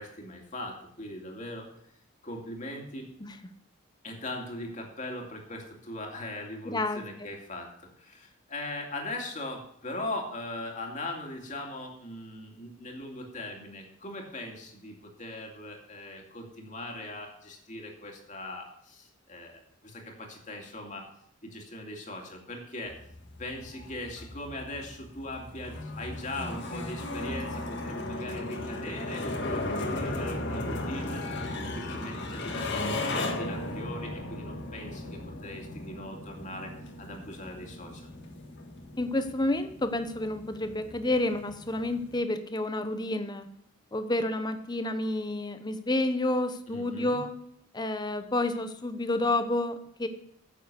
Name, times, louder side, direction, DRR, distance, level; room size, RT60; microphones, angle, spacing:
voice 1, 0.0-1.7 2.2-3.1 4.0-21.1 21.4-23.0 23.4-31.2 31.7-38.0 46.7-47.2, left 1 dB, 35° left, 1 dB, 2.4 m, -40 dB
voice 2, 6.6-7.0 39.0-43.5 43.9-47.4 47.7-50.1, left 2 dB, 20° left, 9 dB, 0.9 m, -29 dB
sound 1, 22.9-42.2, left 2 dB, 55° left, 1.6 m, -36 dB
10.0 x 7.4 x 6.8 m, 0.70 s
head